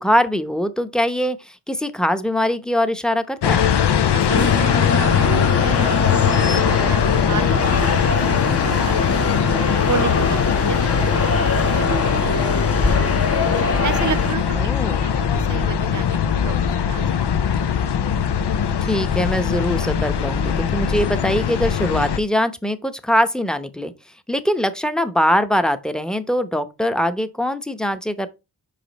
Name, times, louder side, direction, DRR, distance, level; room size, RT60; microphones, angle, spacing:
voice 1, 0.0-3.6 14.5-15.1 18.8-23.9 24.3-28.3, equal, ahead, 0.8 m, -22 dB
sound 1, 3.4-22.2, left 8 dB, 85° left, 0.6 m, -21 dB
voice 2, 4.1-4.7 5.0-9.3 9.9-10.8 11.1-12.9 13.3-13.4 13.8-17.6, right 7 dB, 50° right, 0.5 m, -33 dB
sound 2, 4.3-14.4, left 3 dB, 35° left, 0.9 m, -23 dB
5.3 x 5.1 x 4.0 m
wide cardioid pair, 50°, 40 cm